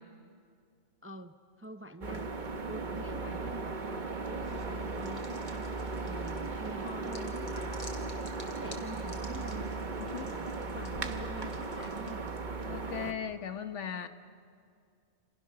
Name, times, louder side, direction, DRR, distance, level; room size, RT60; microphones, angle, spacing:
voice 1, 1.0-2.3 2.7-5.7 6.0-7.8 8.2-9.7 10.3-12.4, right 1 dB, 15° right, 9 dB, 0.5 m, -47 dB
sound 1, 2.0-13.1, right 3 dB, 40° right, 1.2 m, -37 dB
sound 2, 4.4-12.4, left 1 dB, 25° left, 3.1 m, -53 dB
voice 2, 10.0-10.4 12.7-14.1, left 8 dB, 80° left, 10 dB, 1.3 m, -38 dB
29.0 x 26.5 x 6.7 m, 2.3 s
omnidirectional pair, 1.2 m